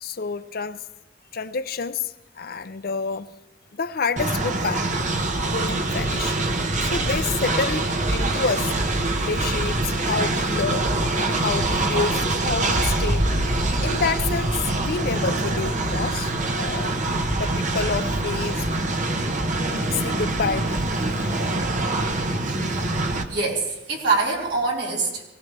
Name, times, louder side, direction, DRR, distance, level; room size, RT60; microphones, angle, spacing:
voice 1, 0.0-0.8 1.3-3.3 3.7-4.9 5.4-6.4 6.8-8.7 9.2-13.2 13.8-17.0 17.4-18.7 19.7-20.8 22.5-22.6, left 5 dB, 55° left, 0.6 m, -28 dB
Train, 4.2-23.2, right 2 dB, 45° right, 1.3 m, -24 dB
voice 2, 23.3-25.2, right 3 dB, 60° right, 4.7 m, -24 dB
23.5 x 18.0 x 3.4 m
head